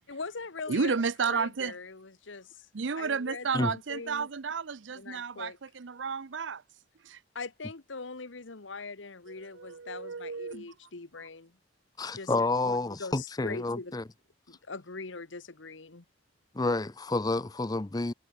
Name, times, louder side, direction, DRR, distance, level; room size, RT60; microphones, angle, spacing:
voice 1, 0.1-1.0 1.3-4.3 4.9-5.6 7.3-11.6 12.1-12.3 12.6-13.9 14.5-16.0, left 4 dB, 80° left, 1.3 m, -42 dB
voice 2, 0.7-1.7 2.7-6.6 7.0-7.2 9.4-10.6, right 5 dB, 75° right, 0.7 m, -32 dB
voice 3, 12.0-14.0 16.5-18.1, left 2 dB, 20° left, 0.6 m, -29 dB
head